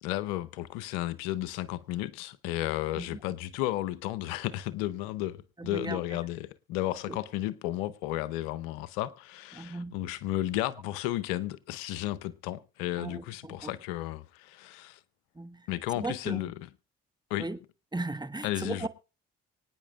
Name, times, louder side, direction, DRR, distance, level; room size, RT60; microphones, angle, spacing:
voice 1, 0.0-15.0 15.7-16.5 17.3-17.5 18.4-18.9, left 15 dB, 90° left, 0.7 m, -33 dB
voice 2, 2.9-3.3 5.6-6.2 7.1-7.2 9.5-9.9 13.0-13.7 15.3-15.7 16.0-16.4 17.4-17.6 17.9-18.9, right 2 dB, 15° right, 1.3 m, -37 dB
24.5 x 9.4 x 2.4 m
hypercardioid pair, 50°, 29 cm